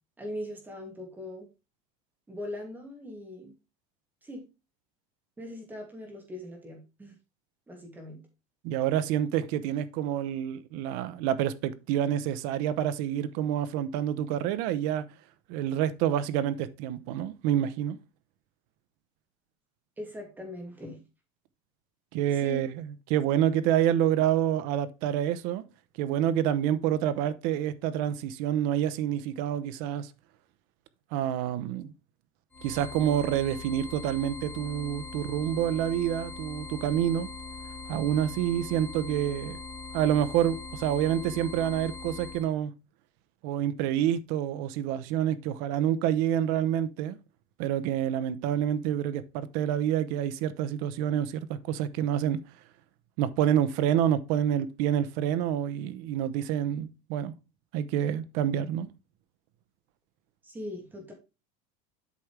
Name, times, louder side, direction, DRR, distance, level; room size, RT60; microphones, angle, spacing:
voice 1, 0.2-1.5 2.3-3.5 4.2-4.4 5.4-7.2 7.7-8.2 20.0-21.0 22.3-22.6 60.4-61.1, left 1 dB, 10° right, 2.5 m, -40 dB
voice 2, 8.6-15.0 15.5-18.0 22.1-25.6 26.0-30.1 31.1-31.9 32.6-37.3 37.9-39.6 39.9-42.7 43.4-47.2 47.6-52.4 53.2-57.3 57.7-58.9, right 10 dB, 55° right, 0.8 m, -28 dB
sound 1, 32.5-42.5, left 4 dB, 10° left, 2.8 m, -41 dB
8.4 x 6.0 x 3.3 m
cardioid pair, 165°, 18 cm